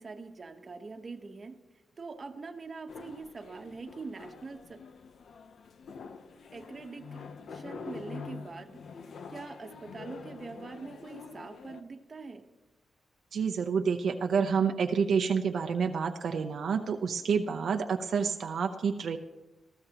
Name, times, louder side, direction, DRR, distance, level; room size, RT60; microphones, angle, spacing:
voice 1, 0.0-1.6 2.0-4.8 6.5-8.8 9.3-12.5, right 4 dB, 40° right, 5 dB, 1.2 m, -43 dB
sound 1, 2.9-11.8, left 5 dB, 70° left, 0.8 m, -46 dB
voice 2, 13.3-19.2, right 6 dB, 75° right, 4 dB, 0.7 m, -28 dB
20.0 x 14.5 x 3.0 m, 1.1 s
wide cardioid pair, 120°, 0 cm